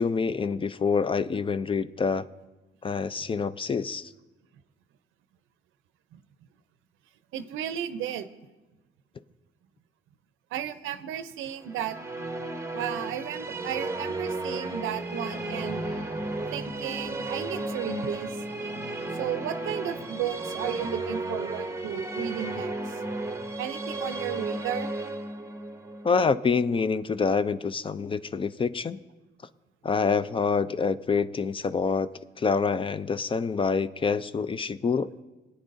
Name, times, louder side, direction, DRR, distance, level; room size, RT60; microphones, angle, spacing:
voice 1, 0.0-2.2 2.8-4.1 26.0-29.0 29.8-32.1 32.4-35.1, left 5 dB, 25° left, 14 dB, 0.4 m, -26 dB
voice 2, 7.3-8.3 10.5-12.0 12.7-15.8 16.5-18.4 19.1-23.0 23.6-24.9, right 10 dB, 90° right, 12 dB, 0.6 m, -34 dB
Musical instrument, 11.6-27.0, right 2 dB, 15° right, 0.8 m, -34 dB
sound 1, 12.9-21.1, left 1 dB, 45° left, 2.3 m, -43 dB
20.5 x 9.0 x 2.6 m, 1.1 s
cardioid pair, 90°, 20 cm